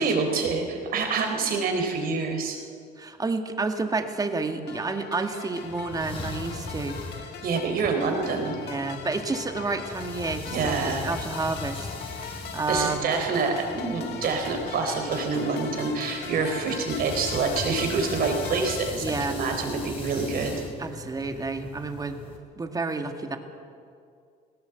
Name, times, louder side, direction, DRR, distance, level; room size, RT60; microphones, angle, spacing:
voice 1, 0.0-2.6 7.4-8.6 10.5-11.1 12.7-20.5, right 4 dB, 60° right, 4 dB, 3.9 m, -27 dB
voice 2, 3.0-7.3 8.6-13.1 19.0-19.4 20.8-22.2 22.6-23.4, right 3 dB, 20° right, 6 dB, 1.8 m, -30 dB
sound 1, 4.7-18.9, left 7 dB, 75° left, 2.0 m, -40 dB
sound 2, 5.6-22.4, left 3 dB, 35° left, 3.3 m, -40 dB
18.5 x 17.0 x 8.1 m, 2.3 s
cardioid pair, 110°, 17 cm